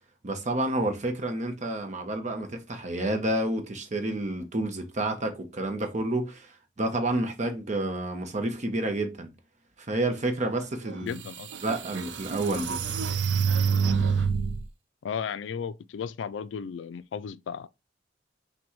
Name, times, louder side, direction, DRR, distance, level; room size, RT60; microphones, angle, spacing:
voice 1, 0.2-9.3 9.8-11.2 11.6-12.8, right 1 dB, 40° right, 0.8 m, -29 dB
sound 1, 10.9-11.0 11.5-14.6, right 6 dB, 70° right, 0.5 m, -27 dB
voice 2, 11.0-11.5 15.0-17.7, left 7 dB, 85° left, 0.3 m, -34 dB
5.9 x 2.2 x 3.0 m
head